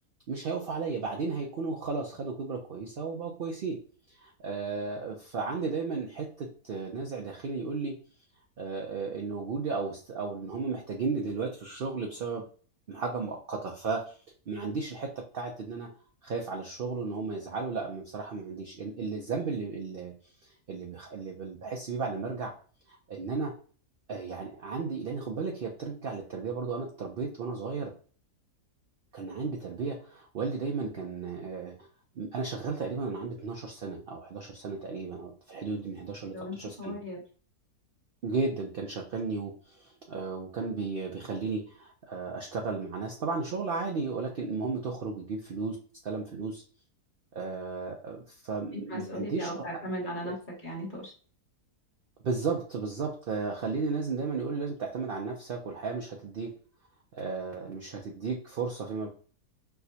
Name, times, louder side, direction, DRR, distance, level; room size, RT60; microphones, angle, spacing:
voice 1, 0.3-3.8 4.1-8.0 8.6-12.4 12.9-14.2 14.5-15.9 16.2-20.1 20.4-22.5 22.9-23.5 24.1-27.9 29.1-31.9 32.2-36.9 38.2-45.8 46.0-46.6 47.3-49.8 52.2-56.5 57.1-59.1, right 4 dB, 70° right, 1 dB, 0.5 m, -34 dB
voice 2, 36.3-37.2 48.9-50.3 50.6-51.1, equal, 35° left, -2 dB, 1.1 m, -37 dB
4.4 x 2.1 x 2.7 m, 0.41 s
omnidirectional pair, 1.6 m